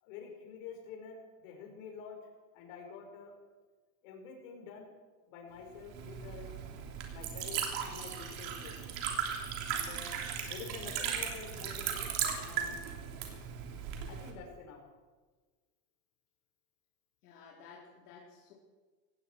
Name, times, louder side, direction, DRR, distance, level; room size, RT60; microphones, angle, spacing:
voice 1, 0.0-2.2 2.5-3.3 4.0-4.9 5.3-6.5 7.1-8.8 9.7-10.2 10.4-12.8 14.1-14.8, left 5 dB, 60° left, 1 dB, 5.1 m, -48 dB
Liquid, 5.8-14.3, right 8 dB, 55° right, 3.4 m, -37 dB
voice 2, 17.2-18.5, left 5 dB, 90° left, -3 dB, 4.0 m, -54 dB
18.5 x 17.0 x 4.6 m, 1.3 s
supercardioid pair, 145°, 44 cm